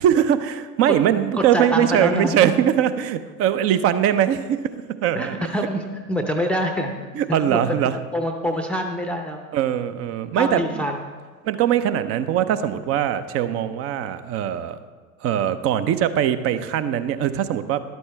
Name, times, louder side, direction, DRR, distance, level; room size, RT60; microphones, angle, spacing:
voice 1, 0.0-4.7 5.0-5.3 7.1-8.0 9.5-10.9 11.4-14.8 15.2-17.8, right 10 dB, 30° right, 12 dB, 0.6 m, -21 dB
voice 2, 1.5-2.5 5.1-9.4 10.3-11.0, equal, 5° left, 2 dB, 0.7 m, -26 dB
13.5 x 11.5 x 3.3 m, 1.5 s
figure-of-eight pair, 80°, 45 cm